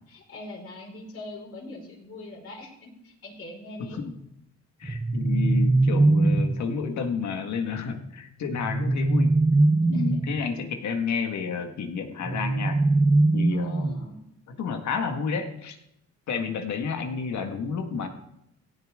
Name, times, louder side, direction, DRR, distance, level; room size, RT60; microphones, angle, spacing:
voice 1, 0.1-4.0 9.9-10.2 13.5-14.2, left 2 dB, 50° left, -2 dB, 5.3 m, -42 dB
voice 2, 3.8-4.2 4.8-9.4 9.9-12.8 13.3-14.1 14.5-15.8 16.3-18.1, left 5 dB, 70° left, 5 dB, 1.8 m, -31 dB
sound 1, 4.8-6.7 8.5-10.4 12.2-14.2, right 2 dB, 10° right, 0.3 m, -22 dB
17.0 x 9.3 x 3.8 m, 0.79 s
cardioid pair, 90°, 30 cm